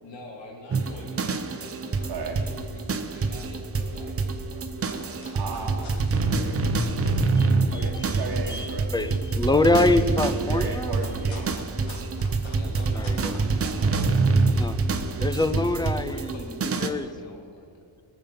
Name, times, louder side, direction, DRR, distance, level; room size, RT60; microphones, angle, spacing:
voice 1, 0.0-6.1 6.8-7.2 9.9-10.0 12.5-17.8, left 2 dB, 70° left, 0 dB, 2.6 m, -46 dB
sound 1, 0.7-16.9, right 3 dB, 30° right, 0.9 m, -26 dB
sound 2, 2.8-3.1 3.5-3.6 3.8-4.3 4.6-7.5 7.8-14.3, left 3 dB, 90° left, 2.8 m, -47 dB
voice 2, 5.3-5.9 6.3-6.6 7.7-9.1 9.5-9.7 10.5-11.6, right 4 dB, 55° right, 1 dB, 1.5 m, -35 dB
voice 3, 7.7-8.1 8.4-11.0 13.0-13.3 14.6-14.8 15.2-16.3 16.8-17.1, left 2 dB, 10° left, 11 dB, 0.5 m, -25 dB
21.0 x 7.2 x 6.9 m, 2.3 s
wide cardioid pair, 145°, 45 cm